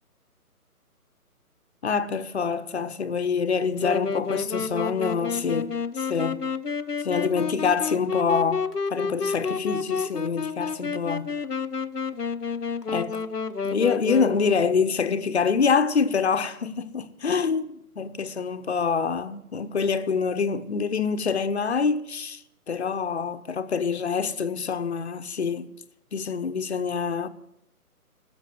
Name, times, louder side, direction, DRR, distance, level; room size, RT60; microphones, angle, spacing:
voice 1, 1.8-6.4 7.0-11.3 12.9-13.2 13.6-22.4 22.7-25.7 26.1-27.3, left 5 dB, 45° left, 0.9 m, -26 dB
Wind instrument woodwind instrument, 3.8-14.7, left 5 dB, 85° left, 0.9 m, -30 dB
14.0 x 7.4 x 9.2 m
figure-of-eight pair, 145°, 46 cm